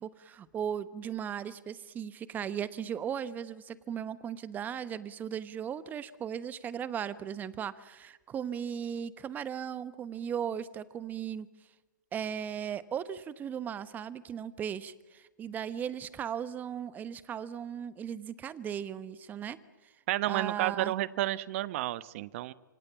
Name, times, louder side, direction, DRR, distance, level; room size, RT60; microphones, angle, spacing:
voice 1, 0.0-11.5 12.1-19.6 20.3-20.9, right 8 dB, 15° right, 15 dB, 1.1 m, -37 dB
voice 2, 20.1-22.5, right 16 dB, 40° right, 17 dB, 1.0 m, -31 dB
27.0 x 25.5 x 7.4 m, 1.1 s
hypercardioid pair, 130°, 10 cm